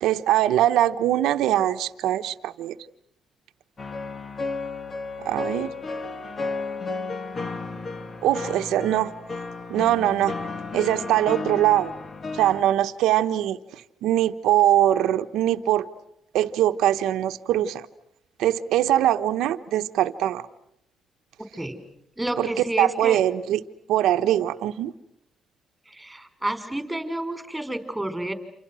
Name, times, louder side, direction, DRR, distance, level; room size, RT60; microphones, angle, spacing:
voice 1, 0.0-2.8 5.2-5.7 8.2-9.1 9.7-10.3 10.7-11.9 12.3-15.9 16.3-17.9 18.4-20.5 22.4-22.5 22.8-23.6 23.9-24.9, right 12 dB, 85° right, 9 dB, 1.0 m, -22 dB
sound 1, 3.8-12.6, left 3 dB, 40° left, 2.2 m, -33 dB
voice 2, 22.2-23.2 25.9-28.3, right 1 dB, 5° right, 9 dB, 4.8 m, -30 dB
29.0 x 27.0 x 6.3 m, 0.77 s
cardioid pair, 90°, 0 cm